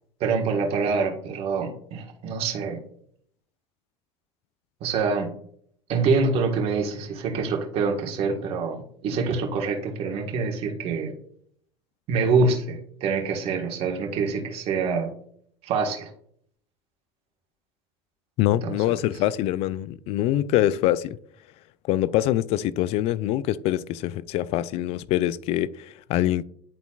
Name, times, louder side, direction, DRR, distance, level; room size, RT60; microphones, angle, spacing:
voice 1, 0.2-2.8 4.8-5.3 5.9-11.1 12.1-15.1 15.6-16.1 18.6-18.7, right 4 dB, 50° right, 1.6 m, -25 dB
voice 2, 18.4-21.2 21.9-26.4, left 13 dB, 55° left, 0.4 m, -24 dB
10.5 x 3.9 x 2.4 m
hypercardioid pair, 85°, 13 cm